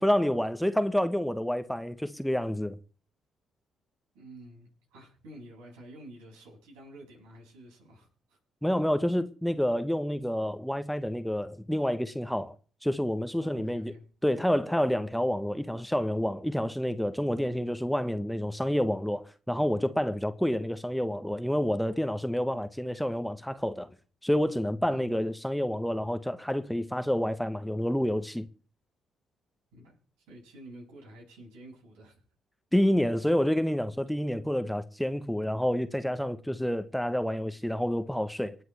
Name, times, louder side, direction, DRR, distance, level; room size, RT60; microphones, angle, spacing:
voice 1, 0.0-2.8 8.6-12.5 12.8-13.9 14.2-23.9 24.2-28.5 32.7-38.5, equal, ahead, 1.1 m, -28 dB
voice 2, 4.1-8.4 8.7-8.8 13.4-14.5 24.9-25.0 29.7-32.2, right 1 dB, 75° right, 7.1 m, -50 dB
26.5 x 9.5 x 3.5 m
figure-of-eight pair, 45°, 0 cm